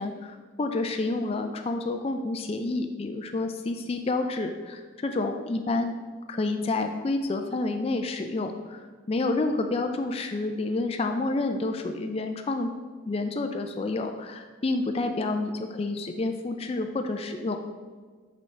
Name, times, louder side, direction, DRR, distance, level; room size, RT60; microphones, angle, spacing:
voice 1, 0.0-5.9 6.3-8.8 9.1-12.7 13.1-17.6, left 2 dB, 30° left, 6 dB, 0.3 m, -29 dB
6.2 x 5.3 x 3.3 m, 1.5 s
head